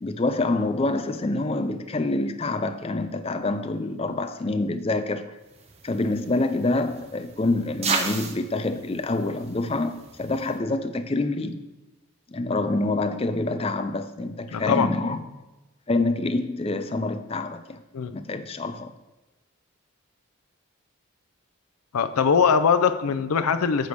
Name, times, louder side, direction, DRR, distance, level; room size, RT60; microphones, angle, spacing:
voice 1, 0.0-5.3 5.8-11.6 12.3-15.2 15.9-17.8 18.1-18.9, left 2 dB, 25° left, 9 dB, 0.4 m, -26 dB
sound 1, 5.5-10.6, right 4 dB, 30° right, 0.7 m, -34 dB
voice 2, 14.5-14.9 17.9-18.1 21.9-23.9, left 6 dB, 90° left, 11 dB, 0.5 m, -21 dB
9.2 x 3.5 x 6.5 m, 1.1 s
head